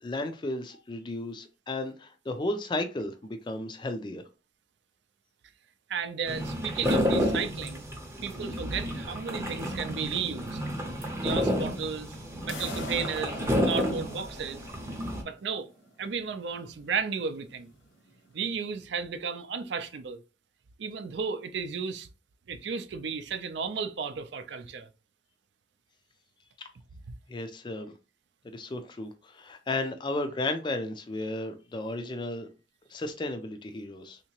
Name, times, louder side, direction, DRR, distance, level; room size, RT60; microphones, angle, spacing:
voice 1, 0.0-4.2 27.3-27.9 28.4-32.5 32.9-34.2, left 2 dB, 25° left, 0.3 m, -34 dB
voice 2, 5.9-7.8 8.2-10.6 11.2-12.2 12.4-14.6 15.2-15.7 16.0-17.7 18.3-20.2 20.8-22.1 22.5-24.9 27.1-27.2, right 6 dB, 65° right, 0.5 m, -34 dB
sound 1, 6.3-15.2, equal, 15° right, 0.6 m, -30 dB
sound 2, 12.5-18.5, left 2 dB, 85° left, 0.9 m, -44 dB
3.5 x 2.9 x 2.8 m
head